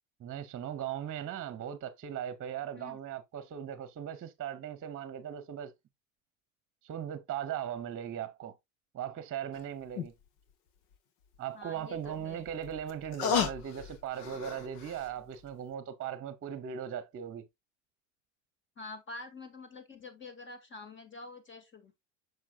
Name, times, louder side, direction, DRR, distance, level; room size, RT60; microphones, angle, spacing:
voice 1, 0.2-5.7 6.8-8.6 8.9-10.1 11.4-17.5, right 9 dB, 35° right, 1.0 m, -38 dB
sound 1, 9.5-9.6 10.0-10.1 12.0-15.1 15.5-15.6, left 7 dB, 70° left, 1.6 m, -34 dB
voice 2, 11.5-12.5 18.8-22.0, left 3 dB, 30° left, 2.2 m, -47 dB
7.3 x 6.4 x 2.4 m
supercardioid pair, 95°, 38 cm